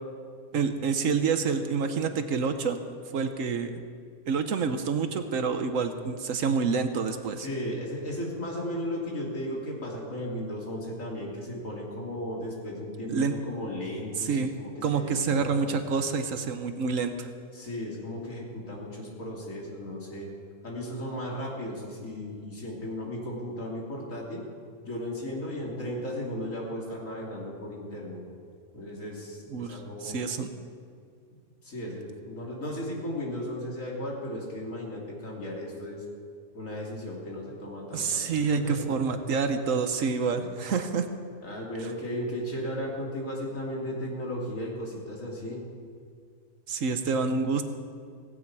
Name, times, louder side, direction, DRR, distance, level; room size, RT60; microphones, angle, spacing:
voice 1, 0.5-2.8 3.1-3.8 4.3-7.5 13.1-13.3 14.2-14.5 14.8-17.3 29.5-30.5 37.9-41.1 46.7-47.6, right 5 dB, 75° right, 8 dB, 1.3 m, -27 dB
voice 2, 7.4-15.7 17.5-20.3 20.6-24.5 24.8-28.2 28.7-30.2 31.6-36.0 36.5-38.9 40.3-40.5 41.4-45.6, left 1 dB, 75° left, -2 dB, 3.3 m, -35 dB
17.0 x 16.0 x 4.8 m, 2.2 s
omnidirectional pair, 1.4 m